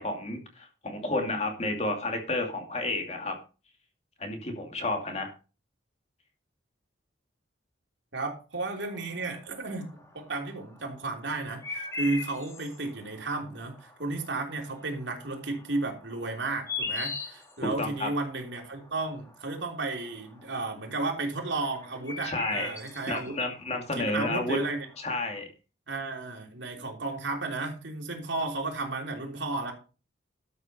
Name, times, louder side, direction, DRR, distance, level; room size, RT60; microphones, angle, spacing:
voice 1, 0.0-3.4 4.2-5.3 17.6-18.1 22.2-22.7 23.1-24.6 25.0-25.5, left 2 dB, 35° left, 4 dB, 2.4 m, -31 dB
voice 2, 8.1-23.4 23.9-24.9 25.9-29.7, right 3 dB, 80° right, 2 dB, 3.3 m, -33 dB
sound 1, 8.8-25.4, left 3 dB, 15° left, 1.8 m, -42 dB
12.5 x 6.5 x 5.5 m, 0.34 s
head